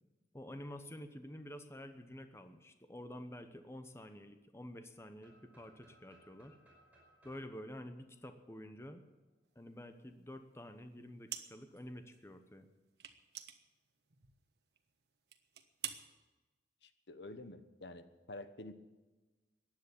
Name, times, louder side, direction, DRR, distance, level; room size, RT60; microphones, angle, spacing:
voice 1, 0.3-6.6 7.2-9.1 9.5-12.7, left 1 dB, 15° left, 8 dB, 0.9 m, -49 dB
sound 1, 5.2-9.0, right 1 dB, 10° right, 5.2 m, -67 dB
sound 2, 11.3-11.8 12.1-12.2 13.0-14.4 14.7-14.9 15.3-16.0, right 10 dB, 70° right, 1.3 m, -46 dB
voice 2, 16.8-18.7, left 2 dB, 75° left, 11 dB, 1.1 m, -49 dB
15.5 x 10.5 x 8.3 m, 1.2 s
head